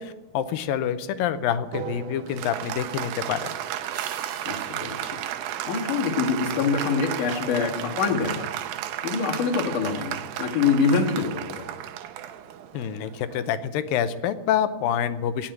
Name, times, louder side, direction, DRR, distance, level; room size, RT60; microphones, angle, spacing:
voice 1, 0.0-3.5 12.7-15.5, left 9 dB, 80° left, 11 dB, 2.5 m, -27 dB
Applause, 1.7-13.6, right 11 dB, 85° right, 2.6 m, -33 dB
sound 1, 3.9-6.5, right 7 dB, 55° right, 1.8 m, -46 dB
voice 2, 4.5-5.2 5.7-8.5 9.0-11.6, left 5 dB, 65° left, 1 dB, 3.1 m, -25 dB
18.5 x 7.4 x 9.1 m, 1.2 s
omnidirectional pair, 4.1 m